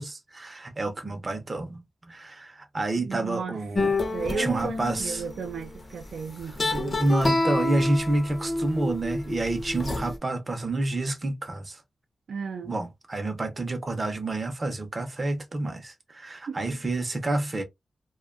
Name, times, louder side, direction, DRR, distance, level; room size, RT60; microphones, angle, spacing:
voice 1, 0.0-3.9 4.4-5.2 7.0-11.8 12.6-17.6, right 2 dB, 25° right, 0.6 m, -29 dB
voice 2, 3.1-3.6 4.1-7.0 12.3-12.8 16.5-16.8, right 5 dB, 75° right, 0.4 m, -34 dB
sound 1, 3.7-5.5 6.5-10.2, left 2 dB, 30° left, 0.6 m, -28 dB
2.6 x 2.2 x 2.4 m
wide cardioid pair, 165°, 0 cm